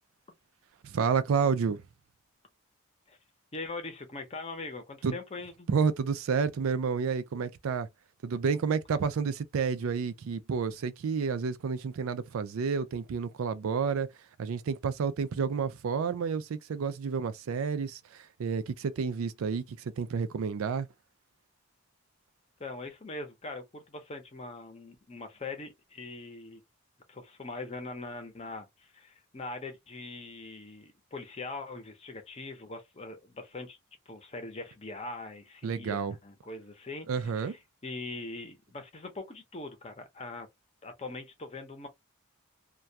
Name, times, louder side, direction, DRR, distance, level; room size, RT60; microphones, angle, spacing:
voice 1, 0.8-1.8 5.0-5.2 5.7-7.9 8.2-14.1 14.4-20.9 35.6-36.1 37.1-37.5, right 6 dB, 80° right, 0.4 m, -30 dB
voice 2, 3.5-5.7 22.6-26.6 27.1-33.8 34.1-40.5 40.8-41.9, left 3 dB, 30° left, 0.6 m, -42 dB
2.2 x 2.2 x 2.6 m
head